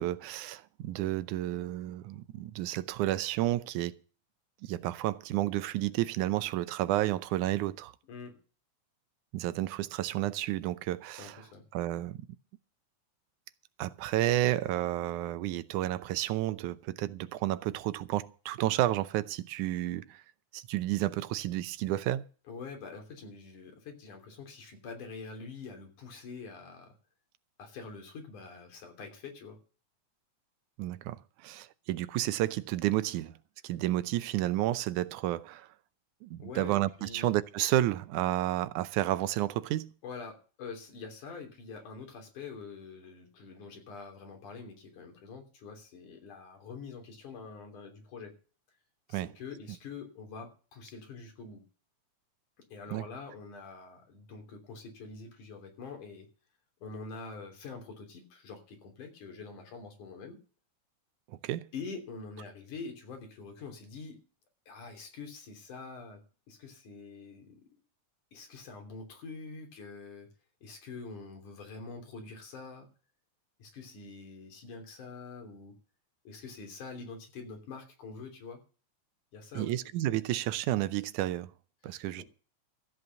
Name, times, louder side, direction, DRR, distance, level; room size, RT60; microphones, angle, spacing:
voice 1, 0.0-4.0 4.6-7.9 9.3-11.4 11.7-12.2 13.8-20.2 20.5-22.3 30.8-33.4 33.6-35.7 36.2-39.9 49.1-49.3 52.9-53.1 61.3-61.7 79.5-81.5 81.8-82.2, right 14 dB, 85° right, 2.2 m, -31 dB
voice 2, 8.1-8.4 11.2-11.6 22.5-27.0 27.6-29.6 36.4-37.3 40.0-48.3 49.1-51.6 52.6-56.3 56.8-60.4 61.7-64.2 64.7-67.8 68.3-70.3 70.6-72.9 73.6-75.7 76.2-78.6 79.3-79.7 81.8-82.2, left 4 dB, 90° left, 4.7 m, -45 dB
14.5 x 8.0 x 6.9 m
omnidirectional pair, 3.4 m